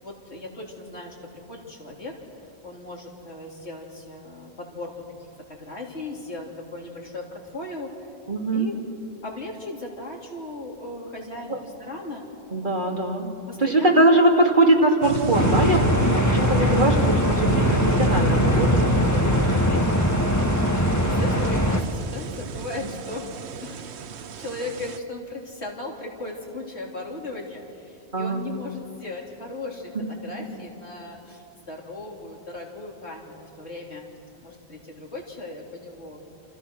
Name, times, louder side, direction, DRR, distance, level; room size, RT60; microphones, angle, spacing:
voice 1, 0.0-2.2 2.6-4.9 5.2-7.9 8.5-8.7 9.2-12.3 12.8-13.0 13.5-14.1 21.0-23.3 23.6-23.8 24.2-34.0 34.4-36.2, left 2 dB, 75° left, -1 dB, 3.7 m, -37 dB
voice 2, 8.3-8.7 11.5-11.6 12.5-13.3 13.6-20.0 28.1-28.4, right 1 dB, 45° right, 0 dB, 2.9 m, -22 dB
sound 1, 15.0-25.0, right 7 dB, 75° right, 1.1 m, -31 dB
sound 2, 15.3-21.8, left 1 dB, 15° left, 1.6 m, -21 dB
28.5 x 28.0 x 6.3 m, 2.7 s
omnidirectional pair, 1.1 m